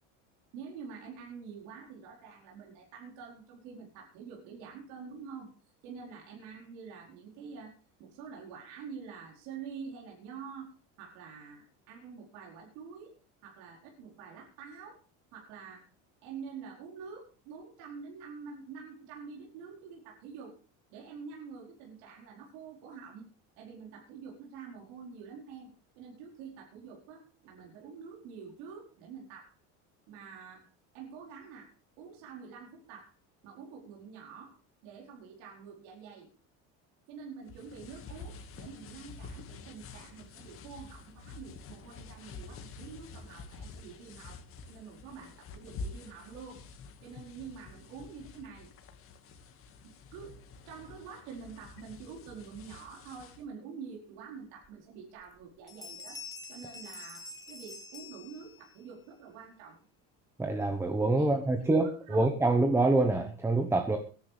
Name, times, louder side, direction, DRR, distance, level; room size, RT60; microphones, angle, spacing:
voice 1, 0.5-5.5 5.8-13.1 13.4-15.0 15.3-15.9 16.2-20.5 20.9-23.3 23.6-25.7 26.0-29.6 30.1-30.7 30.9-33.1 33.4-36.3 37.1-46.6 47.0-48.7 49.8-56.2 56.5-59.8 61.1-61.3 61.6-62.2, right 6 dB, 85° right, -2 dB, 4.7 m, -47 dB
sound 1, 37.5-53.4, left 4 dB, 40° left, 2.0 m, -48 dB
sound 2, 54.6-54.7 55.2-55.4 55.7-58.8, left 3 dB, 10° left, 2.1 m, -46 dB
voice 2, 60.4-64.0, right 2 dB, 5° right, 6 dB, 1.1 m, -26 dB
23.5 x 10.5 x 3.4 m, 0.37 s
cardioid pair, 145°, 35 cm